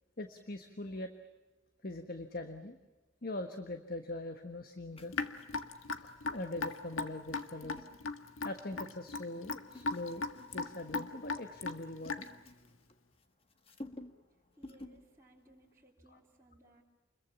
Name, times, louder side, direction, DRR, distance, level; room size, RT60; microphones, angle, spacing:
voice 1, 0.2-1.1 1.8-2.8 3.2-5.1 6.0-7.9 8.4-10.3 10.5-12.3 16.1-16.2, left 2 dB, 45° left, 7 dB, 1.4 m, -42 dB
sound 1, 4.9-8.8 9.4-11.2 11.5-13.2 13.5-14.3 14.6-15.1 15.4-15.6, left 1 dB, 30° left, 1.6 m, -53 dB
Raindrop / Drip, 5.1-12.5, left 3 dB, 85° left, 1.8 m, -38 dB
voice 2, 14.6-16.8, right 1 dB, 15° right, -4 dB, 3.6 m, -62 dB
29.0 x 22.5 x 7.2 m, 1.1 s
head